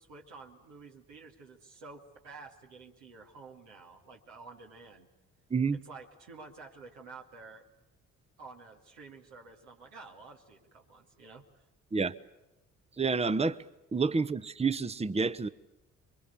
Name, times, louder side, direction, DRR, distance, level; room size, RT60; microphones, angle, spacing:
voice 1, 0.0-5.1 5.8-7.7 8.4-11.4, right 4 dB, 70° right, 2.6 m, -50 dB
voice 2, 13.0-13.6 13.9-15.5, right 4 dB, 15° right, 1.0 m, -28 dB
28.5 x 24.0 x 6.8 m
figure-of-eight pair, 45°, 39 cm